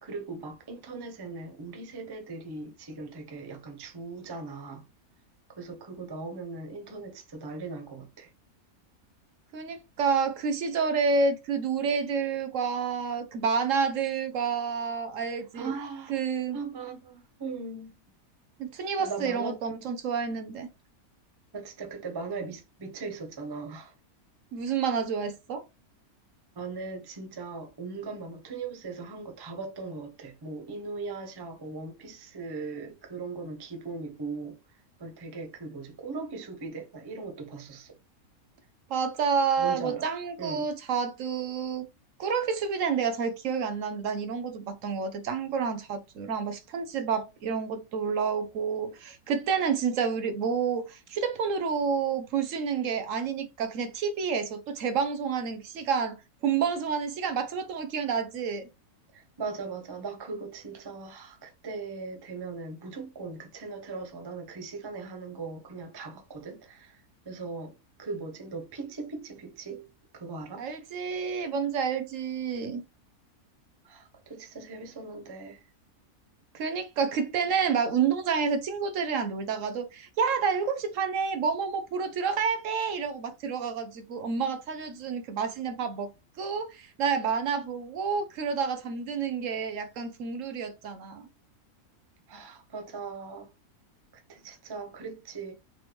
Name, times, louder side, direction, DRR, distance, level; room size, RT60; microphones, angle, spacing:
voice 1, 0.0-4.8 5.5-8.3 15.2-16.2 16.5-18.0 19.0-19.6 21.5-23.9 26.5-38.0 39.6-40.1 40.4-40.7 59.1-70.7 73.8-75.7 92.3-93.5 94.1-95.5, right 4 dB, 25° right, 0.5 m, -39 dB
voice 2, 9.5-15.7 16.1-16.6 18.6-20.7 24.5-25.6 38.9-41.9 42.2-56.2 56.4-58.7 70.6-72.8 76.5-86.1 86.4-91.2, right 6 dB, 65° right, 1.0 m, -29 dB
4.1 x 3.2 x 3.0 m
omnidirectional pair, 1.5 m